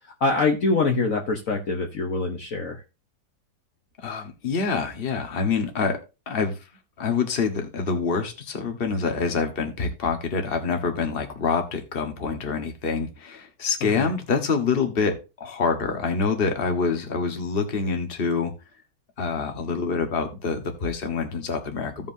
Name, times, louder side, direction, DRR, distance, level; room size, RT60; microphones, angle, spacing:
voice 1, 0.2-2.8 13.9-14.1, left 3 dB, 55° left, 2 dB, 1.4 m, -24 dB
voice 2, 4.0-6.0 6.3-6.6 7.0-18.5 19.2-22.1, left 5 dB, 35° left, 5 dB, 1.4 m, -26 dB
15.5 x 5.4 x 2.7 m, 0.28 s
omnidirectional pair, 1.9 m